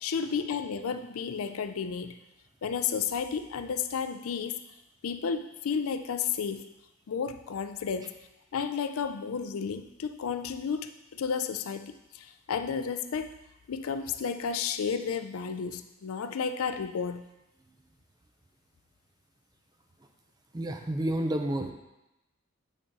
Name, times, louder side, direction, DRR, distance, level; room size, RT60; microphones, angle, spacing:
voice 1, 0.0-2.2 2.6-4.6 5.0-6.6 7.1-8.1 8.5-13.3 13.7-17.3, left 6 dB, 85° left, 10 dB, 0.4 m, -32 dB
voice 2, 20.5-21.7, right 1 dB, 20° right, 5 dB, 0.5 m, -30 dB
8.7 x 3.7 x 4.0 m, 0.95 s
head